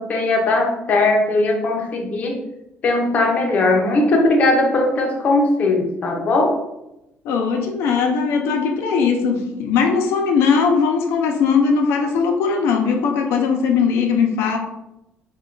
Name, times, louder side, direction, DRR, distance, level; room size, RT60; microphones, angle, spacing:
voice 1, 0.0-2.4 2.8-6.6, left 2 dB, 35° left, 1 dB, 0.6 m, -18 dB
voice 2, 7.2-14.6, left 5 dB, 80° left, 3 dB, 0.5 m, -19 dB
3.2 x 2.2 x 3.8 m, 0.88 s
cardioid pair, 165°, 4 cm